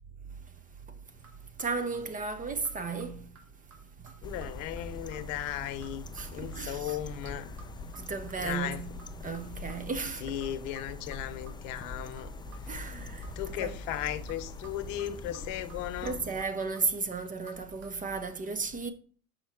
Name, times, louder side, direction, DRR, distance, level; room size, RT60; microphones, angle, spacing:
sound 1, 1.1-17.9, right 3 dB, 40° right, 3.4 m, -57 dB
voice 1, 1.6-3.3 4.0-4.1 6.1-7.0 7.9-8.9 9.2-10.3 12.7-13.3 13.6-13.8 16.0-18.9, right 4 dB, 20° right, 0.9 m, -34 dB
voice 2, 4.2-6.0 6.3-7.5 8.4-8.8 10.2-12.3 13.4-16.2, left 12 dB, 60° left, 1.1 m, -36 dB
sound 2, 4.2-16.4, left 2 dB, 10° left, 0.5 m, -43 dB
5.9 x 5.6 x 4.2 m
hypercardioid pair, 90°, 43 cm